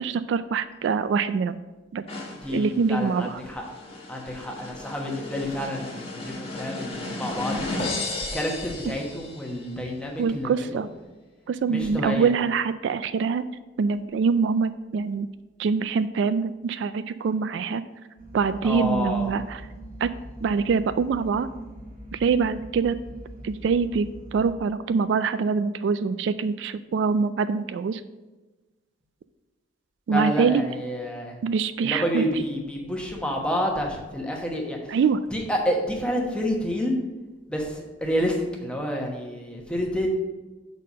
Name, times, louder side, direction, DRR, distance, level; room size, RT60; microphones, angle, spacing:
voice 1, 0.0-1.6 1.9-2.0 2.5-3.4 10.2-10.9 11.5-13.5 13.8-15.3 15.6-17.8 18.3-19.6 20.0-20.1 20.4-21.5 22.1-23.0 23.4-28.0 30.1-30.6 31.4-32.2 34.9-35.2, right 5 dB, 70° right, 13 dB, 0.3 m, -24 dB
sound 1, 2.1-9.7, left 2 dB, 30° left, 1.3 m, -35 dB
voice 2, 2.4-3.6 4.1-7.9 8.3-10.8 11.7-12.3 18.6-19.3 30.1-31.4 31.8-35.0 35.3-36.9 37.5-40.1, equal, 5° left, 0 dB, 1.1 m, -29 dB
sound 2, 18.2-24.5, right 1 dB, 45° right, 1.1 m, -42 dB
6.5 x 4.1 x 6.2 m, 1.2 s
head